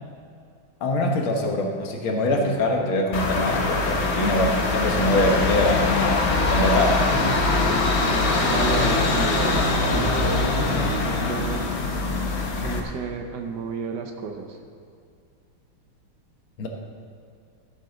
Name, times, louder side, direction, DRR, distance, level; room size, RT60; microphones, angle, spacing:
voice 1, 0.8-6.2 6.5-7.4 16.6-16.7, left 1 dB, 85° left, 2 dB, 2.1 m, -23 dB
sound 1, 3.1-12.8, left 3 dB, 45° left, 0.9 m, -22 dB
voice 2, 8.4-11.7 12.6-14.6, right 5 dB, 65° right, 4 dB, 1.2 m, -32 dB
14.0 x 8.0 x 3.9 m, 2.3 s
omnidirectional pair, 2.2 m